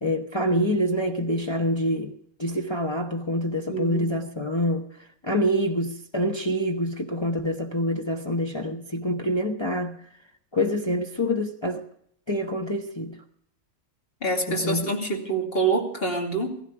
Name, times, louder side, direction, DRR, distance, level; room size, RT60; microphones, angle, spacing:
voice 1, 0.0-4.9 5.2-10.0 10.5-11.8 12.3-13.2 14.5-14.9, equal, 25° left, 0.9 m, -26 dB
voice 2, 3.7-4.1 14.2-16.6, right 3 dB, 50° left, 2.9 m, -26 dB
16.0 x 15.5 x 4.8 m
omnidirectional pair, 1.3 m